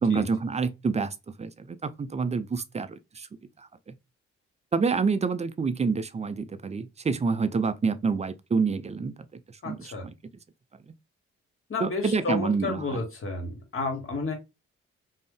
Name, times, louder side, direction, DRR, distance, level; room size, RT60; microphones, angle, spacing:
voice 1, 0.0-3.3 4.7-9.1 9.7-9.8 11.8-12.8, right 5 dB, 20° right, 0.4 m, -27 dB
voice 2, 9.6-10.1 11.7-14.3, left 3 dB, 45° left, 1.2 m, -31 dB
2.4 x 2.0 x 3.7 m
hypercardioid pair, 45°, 31 cm